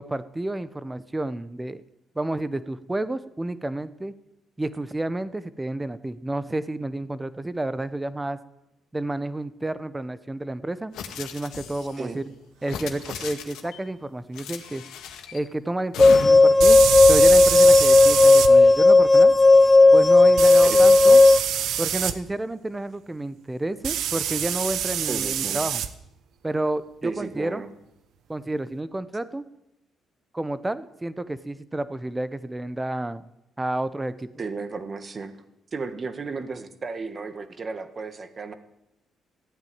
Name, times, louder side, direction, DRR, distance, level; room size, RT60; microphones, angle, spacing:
voice 1, 0.0-1.8 2.1-4.1 4.6-8.4 8.9-12.2 12.6-14.8 15.3-16.8 17.1-19.3 19.9-21.2 21.8-25.8 26.4-27.6 28.3-29.4 30.3-33.2 33.6-34.3, right 2 dB, 15° right, 14 dB, 0.9 m, -30 dB
sound 1, 10.9-12.0 12.6-13.8 14.3-15.4 15.9-16.6, left 8 dB, 85° left, 1.9 m, -36 dB
voice 2, 12.0-12.3 20.7-21.2 25.1-25.6 27.0-27.7 34.4-35.3 35.7-38.5, right 4 dB, 40° right, 9 dB, 1.6 m, -34 dB
sound 2, 13.2-13.3 16.6-18.5 20.4-22.1 23.8-25.9, right 9 dB, 75° right, 0.9 m, -25 dB
sound 3, 16.0-21.4, left 3 dB, 25° left, 0.7 m, -13 dB
15.0 x 9.0 x 9.5 m, 0.89 s
cardioid pair, 90°, 0 cm